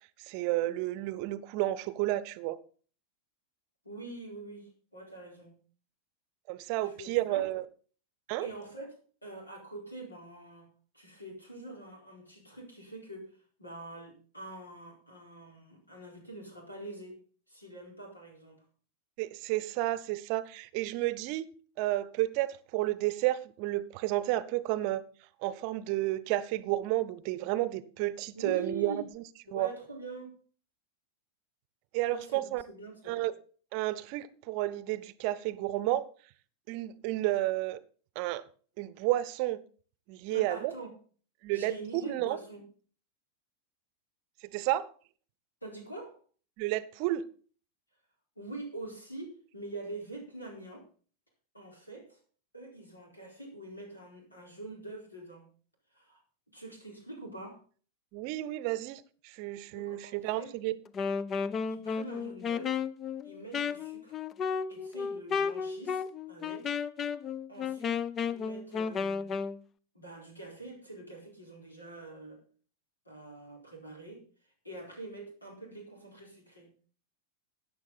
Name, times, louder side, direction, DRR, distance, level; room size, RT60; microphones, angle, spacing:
voice 1, 0.2-2.6 6.5-7.6 8.3-8.5 19.2-21.4 21.8-25.1 25.4-29.2 29.5-29.7 31.9-32.6 33.1-33.3 33.7-36.0 36.7-37.8 38.1-38.4 38.8-39.6 40.1-40.7 41.4-42.4 44.5-44.9 46.6-47.3 58.1-60.8, right 16 dB, 45° right, 0.7 m, -31 dB
voice 2, 3.8-5.6 6.8-7.5 8.4-13.3 13.6-17.2 17.5-18.6 28.3-29.1 29.5-30.3 32.1-33.2 40.3-40.9 41.5-42.6 45.6-46.2 48.4-50.9 51.5-52.2 52.5-55.4 55.9-56.2 56.5-57.6 59.7-60.5 61.7-62.8 63.2-64.2 64.7-66.7 67.5-68.0 68.3-69.3 69.9-72.4 73.0-74.2 74.6-76.7, right 2 dB, 85° left, 4.3 m, -45 dB
Wind instrument woodwind instrument, 60.9-69.6, left 6 dB, 25° left, 0.6 m, -33 dB
14.0 x 9.3 x 4.0 m
figure-of-eight pair, 90°, 0 cm